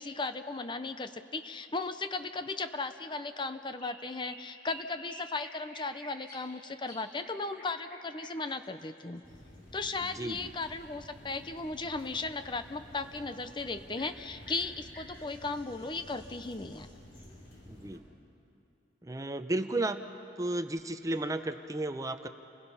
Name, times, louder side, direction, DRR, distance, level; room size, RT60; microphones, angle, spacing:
voice 1, 0.0-9.2 9.7-16.9, left 3 dB, 25° left, 10 dB, 0.6 m, -36 dB
sound 1, 3.3-3.5 3.8-6.5 6.9-10.1 13.4-13.6 14.0-14.2 14.4-17.3 20.3-20.4 21.1-21.2, equal, 50° left, 5.9 m, -52 dB
sound 2, 9.2-18.0, left 1 dB, 70° left, 4.2 m, -52 dB
voice 2, 10.0-10.5 17.7-18.0 19.0-20.0 20.4-22.3, right 2 dB, 20° right, 9 dB, 0.7 m, -33 dB
30.0 x 21.5 x 5.6 m, 2.7 s
head